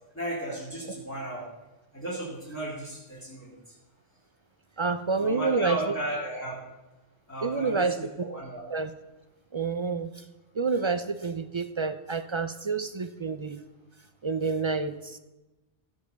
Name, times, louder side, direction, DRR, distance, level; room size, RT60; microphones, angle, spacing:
voice 1, 0.1-1.4 1.9-3.6 5.2-6.6 7.3-8.6, right 1 dB, 10° left, -7 dB, 2.4 m, -35 dB
voice 2, 4.8-5.8 7.4-8.3 8.7-8.9 9.5-10.2 10.5-13.6 14.2-15.2, right 4 dB, 50° right, 11 dB, 0.3 m, -28 dB
15.5 x 5.4 x 6.6 m, 1.1 s
omnidirectional pair, 1.1 m